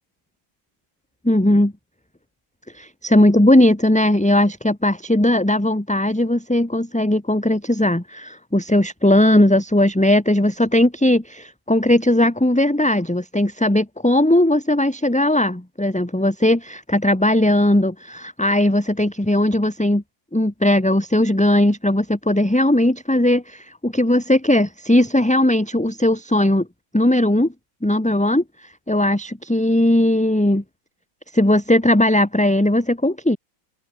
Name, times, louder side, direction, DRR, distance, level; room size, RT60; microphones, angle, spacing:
voice 1, 1.2-1.7 2.7-20.0 20.3-26.7 26.9-27.5 27.8-28.4 28.9-30.6 31.3-33.4, left 1 dB, 5° left, 1.4 m, -18 dB
omnidirectional pair, 2.2 m